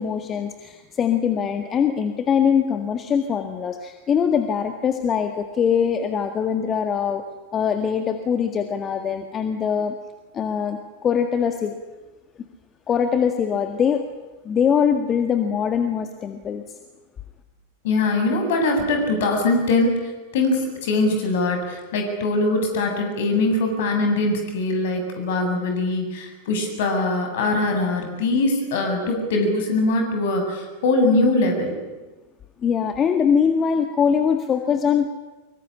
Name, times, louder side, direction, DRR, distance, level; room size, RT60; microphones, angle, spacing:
voice 1, 0.0-7.2 7.5-10.0 10.3-11.8 12.9-14.0 14.5-16.6 32.6-35.1, left 7 dB, 25° left, 7 dB, 1.8 m, -22 dB
voice 2, 17.8-31.7, left 2 dB, 55° left, 5 dB, 7.7 m, -22 dB
25.0 x 23.0 x 9.9 m, 1.2 s
figure-of-eight pair, 90°, 0 cm